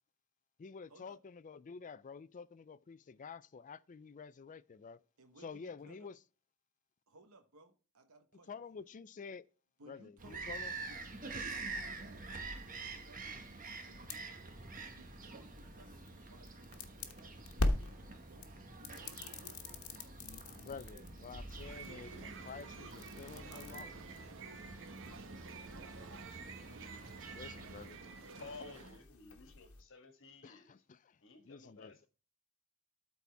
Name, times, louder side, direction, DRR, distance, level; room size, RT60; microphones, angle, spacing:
voice 1, 0.6-5.0 5.4-6.2 8.5-9.5 9.9-10.7 20.2-23.9 27.3-28.0 30.4-31.2 31.5-32.0, left 5 dB, 35° left, 0.4 m, -50 dB
voice 2, 5.2-6.1 7.1-8.5 8.8-8.9 9.8-14.7 14.9-17.9 18.3-19.6 23.5-26.9, right 2 dB, 80° right, 1.2 m, -62 dB
Bird vocalization bird call bird song, 10.2-27.9, right 3 dB, 40° right, 1.3 m, -48 dB
sound 1, 10.5-29.8, left 2 dB, 85° left, 1.2 m, -45 dB
sound 2, 21.4-29.0, right 4 dB, 65° right, 1.0 m, -50 dB
voice 3, 28.4-30.8 31.2-32.1, left 3 dB, 65° left, 1.6 m, -53 dB
12.5 x 4.2 x 3.4 m
head